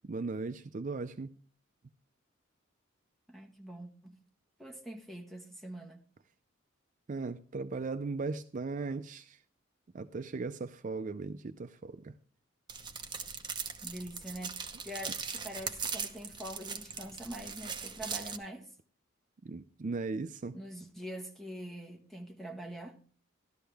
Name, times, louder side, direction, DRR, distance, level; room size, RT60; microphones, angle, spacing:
voice 1, 0.1-1.3 7.1-9.4 9.9-12.1 19.4-20.6, right 3 dB, 40° right, 0.4 m, -37 dB
voice 2, 3.3-4.2 4.6-6.0 13.8-14.6 14.8-18.7 20.5-23.0, equal, ahead, 1.4 m, -44 dB
sound 1, 12.7-18.4, right 6 dB, 25° right, 0.9 m, -40 dB
13.0 x 12.5 x 3.4 m
head